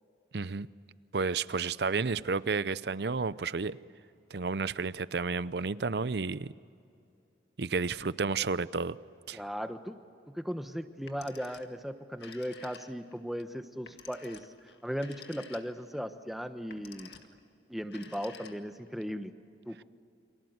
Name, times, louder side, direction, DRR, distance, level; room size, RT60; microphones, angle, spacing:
voice 1, 0.3-0.7 1.1-3.8 4.3-6.5 7.6-9.0 9.3-9.4, right 4 dB, 65° right, 0.6 m, -31 dB
voice 2, 9.3-10.0 10.3-14.5 14.8-17.1 17.7-19.3 19.6-19.8, equal, ahead, 1.1 m, -37 dB
Telephone, 10.9-11.8 12.1-13.2 13.8-15.9 16.6-17.4 17.8-18.9, left 6 dB, 70° left, 2.0 m, -51 dB
29.5 x 25.0 x 8.0 m
head